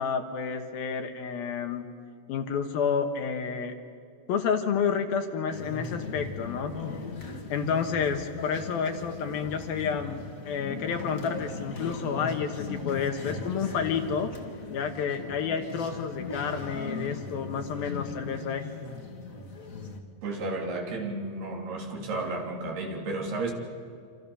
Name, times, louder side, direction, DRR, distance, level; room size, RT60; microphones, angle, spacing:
voice 1, 0.0-1.9 2.3-3.7 4.3-6.7 7.5-10.2 10.5-14.3 14.7-18.7, left 6 dB, 70° left, 6 dB, 2.9 m, -30 dB
sound 1, 5.5-20.0, left 4 dB, 35° left, 1.3 m, -38 dB
voice 2, 20.2-23.5, right 2 dB, 65° right, 1 dB, 5.1 m, -32 dB
27.5 x 27.0 x 7.0 m, 2.3 s
omnidirectional pair, 4.9 m